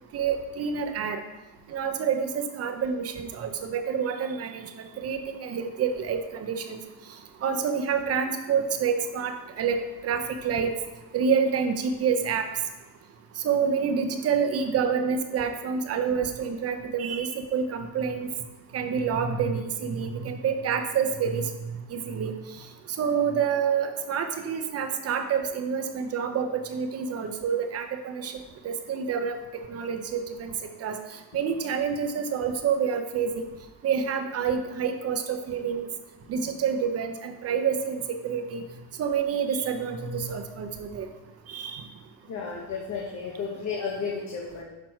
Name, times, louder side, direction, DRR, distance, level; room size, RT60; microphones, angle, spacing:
voice 1, 0.1-1.2 1.7-4.7 5.0-6.8 7.4-10.7 11.1-12.4 13.4-18.3 18.7-21.4 21.9-22.3 23.0-28.3 28.6-29.4 29.7-30.5 30.8-31.0 31.3-33.5 33.8-35.9 36.3-38.6 39.0-41.1 41.5-41.8, right 6 dB, 35° right, 6 dB, 0.7 m, -28 dB
voice 2, 42.3-44.6, left 5 dB, 40° left, -2 dB, 1.3 m, -33 dB
6.0 x 5.9 x 4.5 m, 1.0 s
cardioid pair, 120°, 41 cm